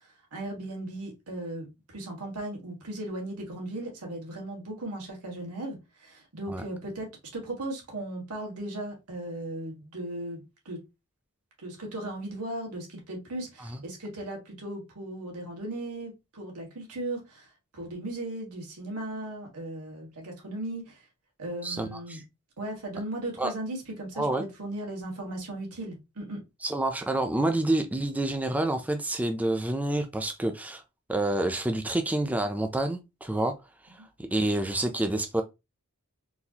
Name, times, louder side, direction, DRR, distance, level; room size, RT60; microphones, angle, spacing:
voice 1, 0.3-10.8 11.6-17.5 17.7-21.0 21.4-22.2 22.6-26.4, right 1 dB, 85° right, 1.6 m, -37 dB
voice 2, 21.6-22.2 23.4-23.5 24.2-24.4 26.6-30.8 31.1-33.5 33.8-35.4, right 1 dB, 5° right, 0.4 m, -28 dB
3.9 x 2.4 x 2.8 m
head